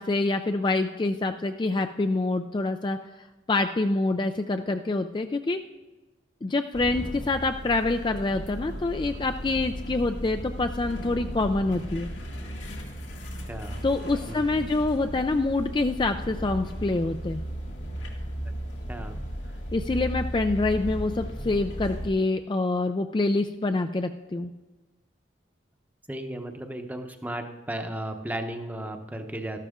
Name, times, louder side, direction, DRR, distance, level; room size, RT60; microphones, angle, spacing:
voice 1, 0.0-3.0 3.5-5.6 6.4-12.1 13.8-17.4 19.7-24.5, left 2 dB, 25° left, 7 dB, 0.3 m, -26 dB
sound 1, 6.7-22.1, equal, 85° left, 2.3 m, -35 dB
voice 2, 13.5-13.9 14.3-14.7 18.9-19.2 26.1-29.6, right 1 dB, 10° right, 5 dB, 0.8 m, -35 dB
13.0 x 12.0 x 3.7 m, 1.2 s
head